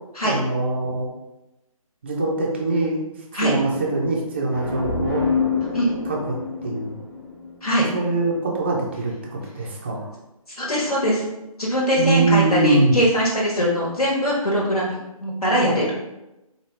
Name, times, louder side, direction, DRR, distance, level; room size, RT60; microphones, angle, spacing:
voice 1, 0.2-1.1 2.0-3.1 3.4-5.2 6.1-6.4 6.6-7.0 7.9-10.1 12.0-12.9, right 2 dB, 20° right, -2 dB, 0.4 m, -23 dB
sound 1, 4.5-8.2, left 5 dB, 35° left, 1.0 m, -27 dB
voice 2, 10.5-11.2 11.6-15.9, equal, 85° left, -4 dB, 1.3 m, -21 dB
4.5 x 2.4 x 3.1 m, 0.95 s
figure-of-eight pair, 155°, 19 cm